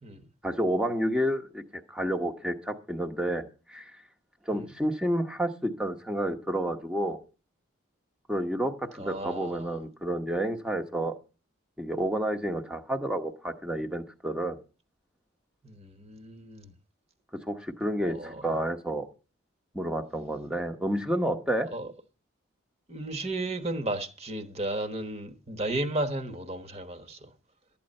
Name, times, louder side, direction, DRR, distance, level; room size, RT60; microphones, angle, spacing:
voice 1, 0.4-3.9 4.5-7.2 8.3-11.1 11.8-14.6 17.5-19.1 19.7-21.7, right 1 dB, 5° right, 0.9 m, -30 dB
voice 2, 9.0-9.8 15.6-16.7 18.1-18.5 21.7-21.9 22.9-27.3, right 2 dB, 30° right, 1.2 m, -34 dB
12.5 x 8.7 x 5.3 m
head